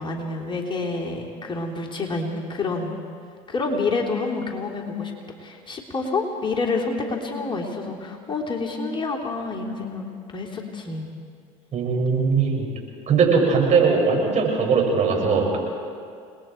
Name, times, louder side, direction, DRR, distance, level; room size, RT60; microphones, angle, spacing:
voice 1, 0.0-3.0 3.5-5.1 5.4-11.1, left 3 dB, 30° left, -1 dB, 3.2 m, -28 dB
voice 2, 11.7-12.7 13.1-15.6, right 5 dB, 45° right, 0 dB, 6.1 m, -20 dB
29.0 x 20.5 x 4.6 m, 2.2 s
hypercardioid pair, 70°, 17 cm